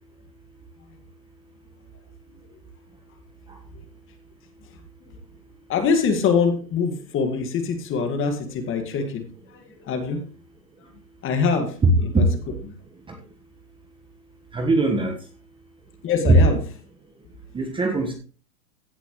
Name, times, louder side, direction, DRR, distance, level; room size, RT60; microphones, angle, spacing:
voice 1, 5.7-10.3 11.2-12.2 16.0-16.6, left 5 dB, 25° left, 7 dB, 2.1 m, -24 dB
voice 2, 11.8-12.2 14.5-15.2 16.3-16.4 17.5-18.1, right 2 dB, 10° right, 3 dB, 1.5 m, -20 dB
16.5 x 8.2 x 3.2 m, 0.37 s
hypercardioid pair, 135°, 48 cm